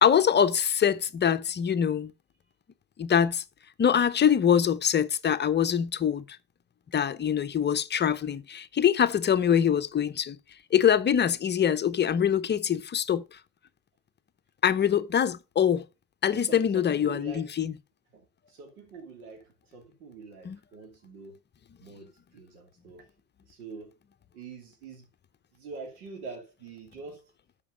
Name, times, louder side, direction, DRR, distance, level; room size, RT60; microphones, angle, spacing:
voice 1, 0.0-2.1 3.0-3.4 3.8-6.2 6.9-10.4 10.7-13.2 14.6-15.8 16.2-17.7 20.4-20.6, left 8 dB, 25° left, 0.8 m, -24 dB
voice 2, 16.3-17.5 18.1-18.2 18.5-19.4 19.7-21.4 21.8-23.0 23.5-23.9 24.3-25.0 25.6-27.2, right 4 dB, 70° right, 2.8 m, -44 dB
12.5 x 5.3 x 5.3 m
hypercardioid pair, 80°, 45 cm